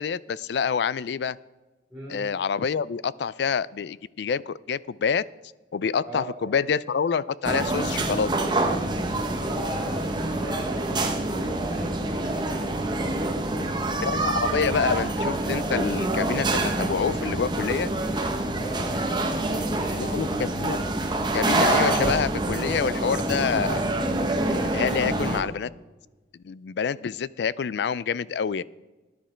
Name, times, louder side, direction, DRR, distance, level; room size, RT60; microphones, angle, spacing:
voice 1, 0.0-1.4 2.1-5.2 5.7-8.3 14.0-17.9 20.0-20.8 21.3-23.8 24.5-25.7 26.4-28.6, left 6 dB, 70° left, 20 dB, 0.4 m, -27 dB
voice 2, 6.0-6.5 9.2-13.8 18.5-20.3, right 1 dB, 5° right, -9 dB, 3.7 m, -37 dB
sound 1, 7.4-25.4, right 2 dB, 25° right, 1.1 m, -26 dB
13.5 x 10.0 x 4.4 m, 1.2 s
head